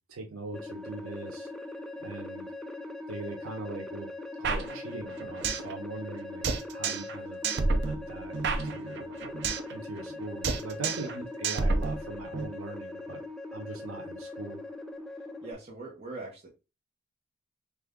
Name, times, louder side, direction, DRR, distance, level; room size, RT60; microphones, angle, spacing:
voice 1, 0.1-1.5 2.0-2.5 3.1-4.1 4.4-6.4 6.7-9.1 9.7-13.2 13.5-14.6, right 3 dB, 85° right, 2 dB, 0.7 m, -41 dB
sound 1, 0.5-15.5, left 2 dB, ahead, 0.3 m, -41 dB
sound 2, 4.4-5.7 6.0-6.1 6.4-7.2 7.4-9.7 10.0-10.2 10.4-11.2 11.4-12.4, right 3 dB, 55° right, 0.5 m, -30 dB
voice 2, 15.4-16.5, right 3 dB, 30° right, -4 dB, 0.8 m, -42 dB
3.2 x 2.4 x 3.6 m, 0.29 s
head